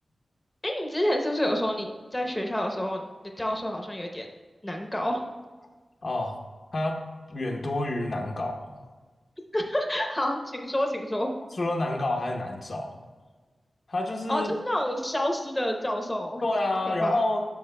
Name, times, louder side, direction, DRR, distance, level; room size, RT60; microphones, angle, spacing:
voice 1, 0.6-1.9 2.1-4.3 4.6-5.2 9.5-11.3 14.3-16.4 16.8-17.2, left 1 dB, 15° left, 2 dB, 0.8 m, -28 dB
voice 2, 6.0-6.4 6.7-7.0 7.3-8.8 11.5-13.0 13.9-14.5 16.4-17.4, left 2 dB, 55° left, 2 dB, 0.8 m, -28 dB
10.5 x 6.5 x 2.2 m, 1.4 s
wide cardioid pair, 95°, 0 cm